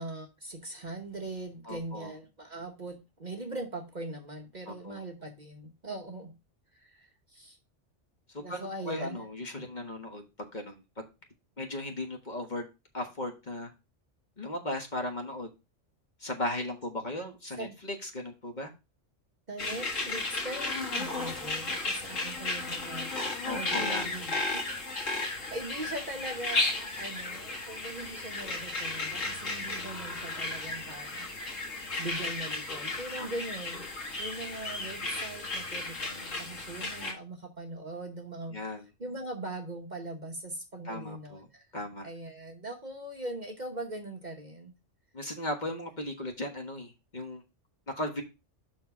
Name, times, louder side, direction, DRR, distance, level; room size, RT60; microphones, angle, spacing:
voice 1, 0.0-6.3 6.7-7.6 8.4-9.3 17.6-17.8 19.5-24.7 25.0-31.3 32.0-38.6 39.0-41.7 42.0-44.7, right 2 dB, 40° right, 1.1 m, -41 dB
voice 2, 1.6-2.1 4.7-5.0 8.5-10.2 10.5-11.1 11.6-12.7 12.9-13.7 14.4-15.5 16.2-18.7 23.4-24.1 33.2-33.3 38.5-38.8 40.8-41.4 41.7-42.1 45.1-47.4 47.9-48.2, left 1 dB, 35° left, 1.5 m, -36 dB
sound 1, 19.6-37.1, left 2 dB, 80° left, 2.1 m, -34 dB
5.9 x 4.6 x 5.8 m
omnidirectional pair, 1.3 m